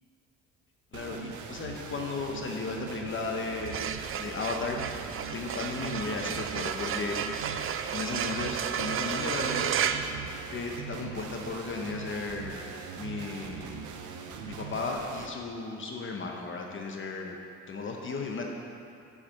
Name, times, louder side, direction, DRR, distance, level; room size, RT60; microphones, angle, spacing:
voice 1, 0.9-3.8 4.2-4.8 5.3-7.1 7.9-9.9 10.2-12.6 13.0-13.8 14.4-17.4 17.7-18.5, left 3 dB, 40° left, 1 dB, 0.8 m, -35 dB
sound 1, 0.9-15.3, right 6 dB, 80° right, 0.7 m, -41 dB
sound 2, 3.5-11.0, right 8 dB, 45° right, 0.4 m, -33 dB
7.2 x 4.9 x 6.3 m, 2.6 s
cardioid pair, 90°, 30 cm